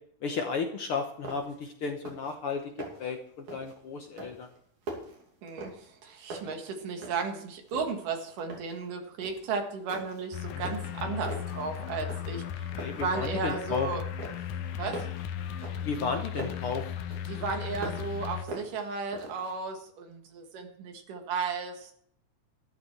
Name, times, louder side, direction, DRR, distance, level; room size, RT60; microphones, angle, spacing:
voice 1, 0.2-4.5 10.5-10.7 12.7-13.9 15.8-16.8, left 5 dB, 65° left, 4 dB, 1.5 m, -33 dB
sound 1, 0.8-0.9 1.2-1.6 1.9-2.4 2.6-3.1 3.5-3.8 4.2-6.0 6.3-7.4 7.7-8.8 9.2-9.5 9.9-10.3 10.6-11.6 12.1-12.5 12.8-13.9 14.2-16.7 17.1-18.2 18.5-19.5, right 2 dB, 65° right, 4.1 m, -42 dB
voice 2, 5.4-14.0 14.8-15.1 17.3-21.9, right 5 dB, 85° right, 4 dB, 3.4 m, -35 dB
sound 2, 10.3-18.5, left 9 dB, 80° left, 2.4 m, -36 dB
13.0 x 12.0 x 4.5 m, 0.65 s
omnidirectional pair, 3.6 m